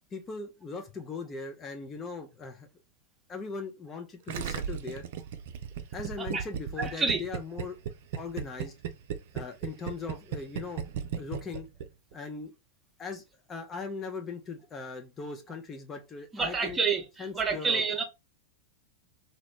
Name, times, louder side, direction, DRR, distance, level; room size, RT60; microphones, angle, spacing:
voice 1, 0.1-2.7 3.3-5.0 5.9-7.8 8.2-8.7 9.3-10.8 11.2-11.7 12.1-12.5 13.0-13.2 13.5-16.8 17.2-17.8, left 4 dB, 20° left, 0.5 m, -39 dB
Gurgling, 4.3-12.1, right 8 dB, 55° right, 0.4 m, -35 dB
voice 2, 6.8-7.2 16.3-18.0, right 5 dB, 15° right, 0.8 m, -29 dB
3.0 x 2.7 x 3.0 m
figure-of-eight pair, 90°, 0 cm